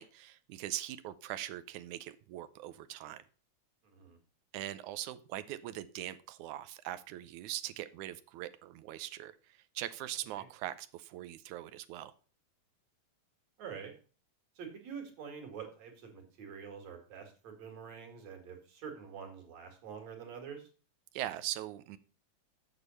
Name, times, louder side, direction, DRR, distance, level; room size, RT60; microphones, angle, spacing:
voice 1, 0.0-3.2 4.5-12.1 21.1-22.0, right 13 dB, 90° right, 13 dB, 2.1 m, -41 dB
voice 2, 3.8-4.2 10.4-10.5 13.6-13.9 14.6-20.7, right 6 dB, 65° right, 3 dB, 3.4 m, -46 dB
8.2 x 6.9 x 5.4 m, 0.38 s
omnidirectional pair, 3.4 m